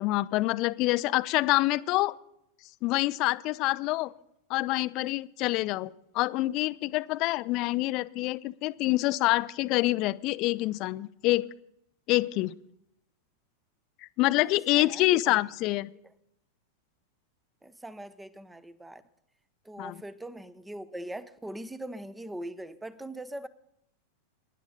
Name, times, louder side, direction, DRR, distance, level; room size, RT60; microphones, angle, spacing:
voice 1, 0.0-2.1 2.8-4.1 4.5-11.5 12.1-12.5 14.2-15.9 19.8-19.9, left 19 dB, 40° left, 0.5 m, -26 dB
voice 2, 14.7-15.4 17.6-19.0 19.6-23.5, right 1 dB, 5° right, 0.9 m, -41 dB
23.0 x 11.5 x 4.1 m
figure-of-eight pair, 90°, 0 cm